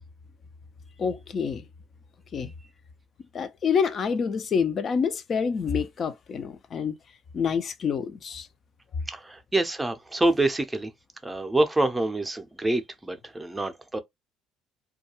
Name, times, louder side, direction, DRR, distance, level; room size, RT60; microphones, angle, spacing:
voice 1, 1.0-1.6 2.3-2.5 3.3-6.9 7.3-8.5, left 6 dB, 45° left, 0.4 m, -27 dB
voice 2, 9.1-10.9 11.2-14.0, right 2 dB, 10° right, 0.6 m, -26 dB
2.3 x 2.2 x 2.9 m
hypercardioid pair, 60°, 0 cm